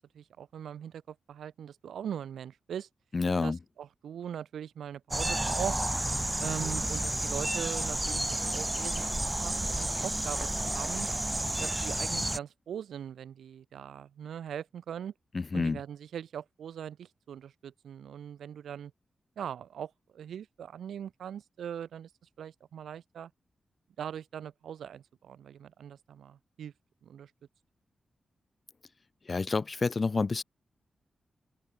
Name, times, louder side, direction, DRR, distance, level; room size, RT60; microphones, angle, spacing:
voice 1, 0.0-2.9 3.4-5.8 6.4-11.1 11.6-15.1 15.5-18.9 19.4-22.1 22.4-23.3 24.0-26.7 27.0-27.3, right 9 dB, 85° right, 1.4 m, -41 dB
voice 2, 3.1-3.6 15.3-15.8 29.3-30.4, left 4 dB, 50° left, 0.3 m, -29 dB
sound 1, 5.1-12.4, right 1 dB, 15° right, 0.7 m, -31 dB
open air
cardioid pair, 50°, 0 cm